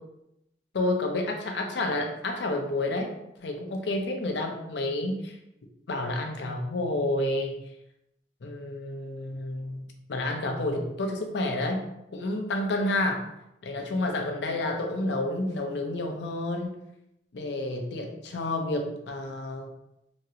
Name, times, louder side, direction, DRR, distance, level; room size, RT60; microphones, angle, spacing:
voice 1, 0.7-3.1 3.4-5.4 5.9-7.6 8.4-11.8 12.1-13.2 13.6-16.8 17.3-19.7, left 2 dB, 80° left, 3 dB, 0.5 m, -30 dB
2.9 x 2.8 x 2.4 m, 0.83 s
head